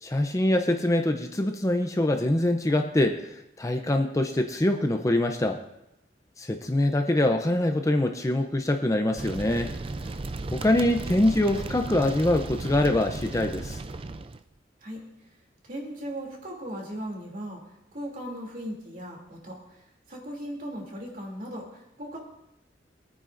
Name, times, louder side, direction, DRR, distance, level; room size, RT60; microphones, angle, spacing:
voice 1, 0.0-5.6 6.4-9.7 10.5-13.8, left 1 dB, 20° left, 5 dB, 0.6 m, -24 dB
sound 1, 9.2-14.4, right 3 dB, 30° right, 0.4 m, -35 dB
voice 2, 15.6-17.6 17.9-22.2, equal, 50° right, -1 dB, 2.8 m, -38 dB
22.5 x 9.1 x 2.6 m, 0.86 s
head